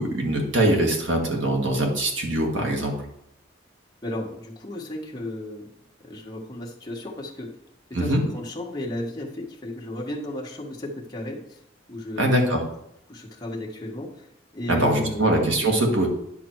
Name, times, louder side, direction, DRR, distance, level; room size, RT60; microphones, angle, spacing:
voice 1, 0.0-2.9 7.9-8.2 12.2-12.6 14.7-16.1, right 1 dB, 70° right, 1 dB, 1.8 m, -22 dB
voice 2, 4.0-5.7 6.0-7.5 8.0-11.6 11.9-12.3 13.1-14.3 14.5-15.4, left 1 dB, 20° left, -2 dB, 1.5 m, -34 dB
10.0 x 5.9 x 4.6 m, 0.79 s
head